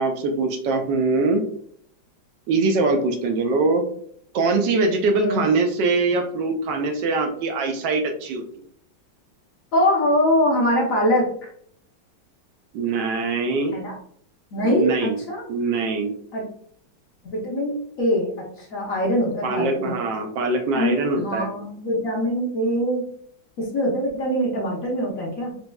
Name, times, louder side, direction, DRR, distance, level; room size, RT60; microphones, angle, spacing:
voice 1, 0.0-1.4 2.5-3.8 4.3-8.4 12.7-13.8 14.6-15.2 15.5-16.1 19.4-21.5, right 3 dB, 75° right, 5 dB, 1.2 m, -22 dB
voice 2, 9.7-11.5 13.7-14.0 14.5-15.4 16.3-16.4 17.2-20.0 20.7-23.0 23.6-25.5, equal, 55° left, -2 dB, 1.1 m, -23 dB
5.1 x 2.9 x 2.2 m, 0.63 s
omnidirectional pair, 2.0 m